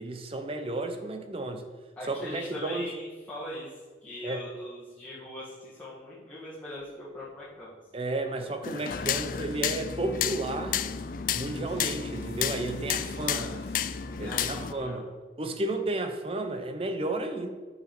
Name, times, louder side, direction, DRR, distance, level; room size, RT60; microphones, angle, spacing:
voice 1, 0.0-1.6 2.1-2.9 4.2-4.4 7.9-10.8 11.3-13.5 14.2-15.0 15.4-17.5, right 2 dB, 30° right, 0.7 m, -32 dB
voice 2, 2.0-7.7 13.2-13.6 14.2-15.2, left 1 dB, 5° left, 1.8 m, -41 dB
sound 1, 6.8-7.5 8.0-14.6, equal, 70° left, 1.0 m, -43 dB
sound 2, 8.6-14.7, left 10 dB, 50° left, 0.3 m, -32 dB
6.2 x 5.0 x 5.9 m
head